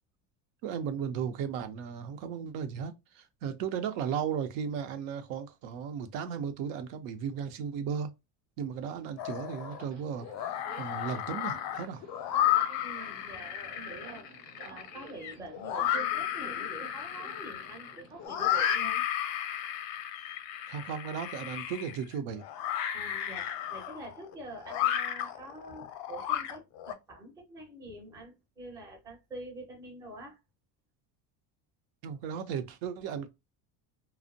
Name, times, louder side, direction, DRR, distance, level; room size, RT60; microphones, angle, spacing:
voice 1, 0.6-8.1 8.6-10.3 10.8-12.0 20.7-22.4 32.0-33.3, right 7 dB, 85° right, 0.6 m, -35 dB
Subway metro underground, 8.7-18.3, right 4 dB, 70° right, 1.1 m, -52 dB
sound 1, 9.2-9.8 10.2-26.9, left 11 dB, 55° left, 0.5 m, -33 dB
voice 2, 12.8-14.3 14.6-19.1 22.9-30.4, right 1 dB, 10° right, 0.4 m, -46 dB
2.5 x 2.0 x 2.6 m
cardioid pair, 175°, 43 cm